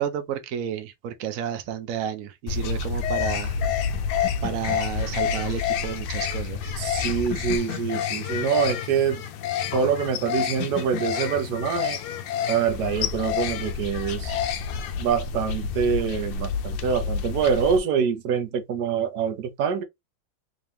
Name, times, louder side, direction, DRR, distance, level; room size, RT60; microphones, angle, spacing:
voice 1, 0.0-3.6 4.4-6.7, right 9 dB, 85° right, 0.7 m, -31 dB
sound 1, 2.5-17.8, left 7 dB, 70° left, 1.0 m, -28 dB
voice 2, 6.8-9.2 9.7-12.0 12.5-14.4 15.0-19.8, right 7 dB, 65° right, 1.1 m, -25 dB
3.7 x 2.8 x 3.3 m
omnidirectional pair, 2.3 m